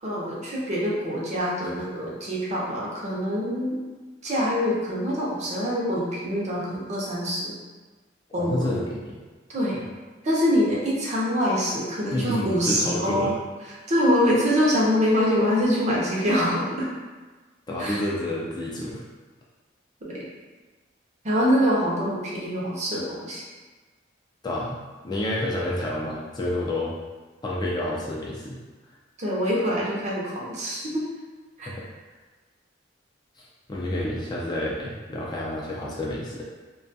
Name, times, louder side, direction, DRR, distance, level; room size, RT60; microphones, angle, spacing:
voice 1, 0.0-3.8 4.2-7.5 8.3-8.9 9.5-9.8 10.2-13.3 13.9-16.9 17.8-18.0 20.0-20.3 21.2-23.4 29.2-31.0 31.6-31.7, equal, 40° right, -5 dB, 0.6 m, -24 dB
voice 2, 8.4-9.2 9.7-9.9 12.1-13.3 17.7-19.0 24.4-26.9 27.4-28.6 31.6-31.9 33.4-33.5 33.7-36.4, left 1 dB, 20° left, -4 dB, 0.3 m, -29 dB
2.2 x 2.2 x 2.6 m, 1.3 s
head